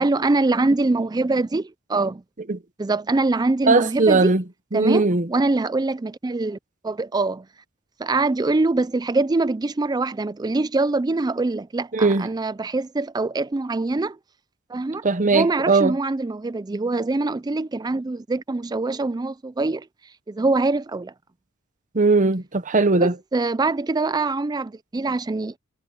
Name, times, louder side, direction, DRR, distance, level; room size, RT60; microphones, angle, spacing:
voice 1, 0.0-2.2 2.8-4.3 4.7-6.6 6.8-7.5 8.0-14.2 14.7-19.9 20.3-21.1 23.0-25.5, right 3 dB, 20° right, 0.4 m, -24 dB
voice 2, 3.7-4.4 4.7-5.3 11.9-12.3 15.0-15.9 21.9-23.2, right 3 dB, 35° right, 0.9 m, -19 dB
head